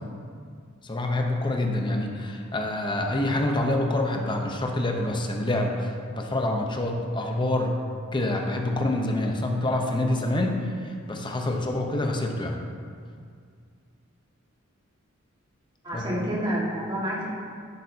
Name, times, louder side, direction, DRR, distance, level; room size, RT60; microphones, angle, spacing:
voice 1, 0.8-7.8 8.1-12.6 15.9-16.0, left 1 dB, 25° left, 2 dB, 0.8 m, -26 dB
voice 2, 15.8-17.3, equal, 20° right, -5 dB, 1.8 m, -28 dB
11.0 x 8.1 x 2.8 m, 2.2 s
head